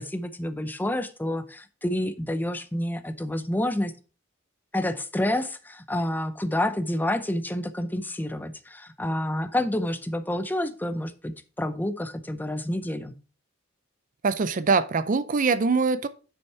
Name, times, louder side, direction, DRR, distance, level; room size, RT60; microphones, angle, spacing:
voice 1, 0.0-3.9 4.7-13.1, left 1 dB, 10° left, 0.6 m, -29 dB
voice 2, 14.2-16.1, right 4 dB, 40° right, 0.5 m, -23 dB
7.2 x 6.4 x 4.6 m
head